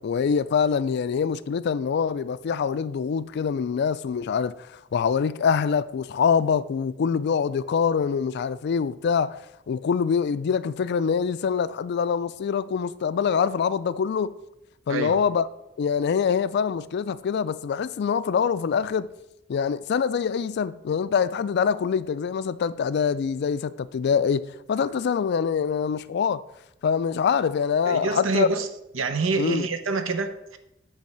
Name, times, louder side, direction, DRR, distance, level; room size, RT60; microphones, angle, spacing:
voice 1, 0.0-4.5 4.9-9.4 9.7-14.3 14.9-15.5 15.8-19.1 19.5-26.4 26.8-28.5 29.4-29.7, left 6 dB, 55° left, 0.3 m, -24 dB
voice 2, 27.9-28.7 28.9-30.6, right 4 dB, 80° right, 0.8 m, -26 dB
8.4 x 3.4 x 6.5 m
head